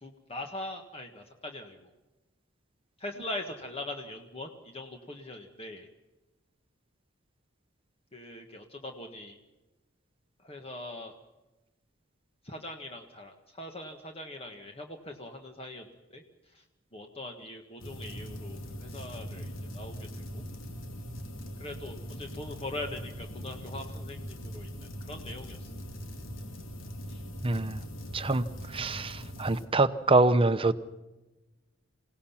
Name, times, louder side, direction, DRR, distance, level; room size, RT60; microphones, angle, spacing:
voice 1, 0.0-1.9 3.0-5.9 8.1-9.4 10.4-11.2 12.4-16.6 16.9-20.4 21.6-25.7 27.1-27.3, left 1 dB, 30° left, 3 dB, 1.6 m, -42 dB
sound 1, 17.8-29.6, equal, 85° left, 2.9 m, -41 dB
voice 2, 27.4-27.8 28.1-28.5 28.7-30.7, right 2 dB, 25° right, 11 dB, 0.9 m, -25 dB
27.5 x 18.0 x 5.8 m, 1.1 s
head